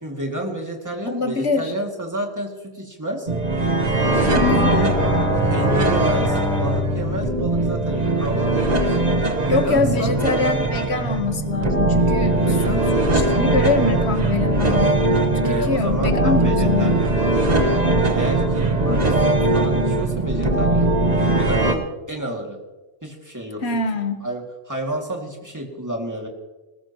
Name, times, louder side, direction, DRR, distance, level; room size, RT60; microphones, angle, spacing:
voice 1, 0.0-3.3 4.2-4.9 5.4-9.1 9.4-10.2 12.3-13.1 15.4-17.1 17.5-17.7 18.0-19.2 19.5-20.9 21.3-22.6 23.0-23.6 24.2-26.3, right 1 dB, 15° right, 0 dB, 2.3 m, -30 dB
voice 2, 1.1-1.7 4.3-4.8 9.5-12.8 13.1-15.0 15.4-17.0 23.6-24.2, left 3 dB, 80° left, 7 dB, 1.5 m, -24 dB
sound 1, 3.3-21.7, right 2 dB, 40° right, 1.3 m, -20 dB
Bowed string instrument, 3.5-8.8, left 3 dB, ahead, 1.7 m, -27 dB
20.0 x 19.5 x 3.0 m, 1.2 s
omnidirectional pair, 1.1 m